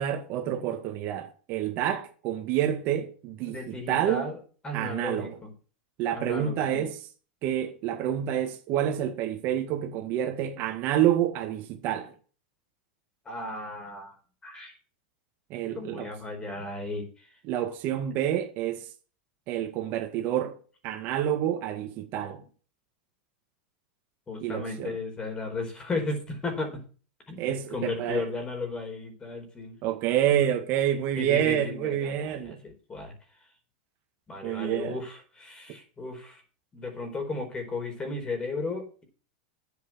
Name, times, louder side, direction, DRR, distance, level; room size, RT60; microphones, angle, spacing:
voice 1, 0.0-4.3 4.7-5.4 6.0-7.0 7.4-12.1 15.5-16.1 17.5-18.9 19.5-20.6 20.8-22.4 24.4-25.0 27.4-28.3 29.8-32.6 34.4-35.0, right 11 dB, 45° right, 1.8 m, -28 dB
voice 2, 3.4-4.4 4.6-5.5 6.1-6.9 13.2-14.8 15.7-17.3 24.3-26.8 27.3-27.4 27.7-29.8 31.1-33.1 34.3-36.4 36.7-39.0, left 3 dB, 15° left, 4.3 m, -35 dB
9.7 x 8.5 x 5.8 m
supercardioid pair, 140°, 5 cm